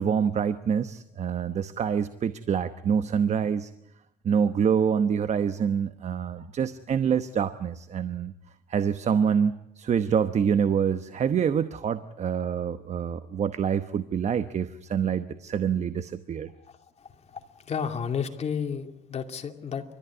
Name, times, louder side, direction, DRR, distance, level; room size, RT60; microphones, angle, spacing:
voice 1, 0.0-3.7 4.2-8.3 8.7-16.5, right 7 dB, 40° right, 11 dB, 1.0 m, -26 dB
voice 2, 16.6-19.8, left 7 dB, 40° left, 5 dB, 2.6 m, -33 dB
30.0 x 14.0 x 9.6 m, 0.84 s
cardioid pair, 110°, 17 cm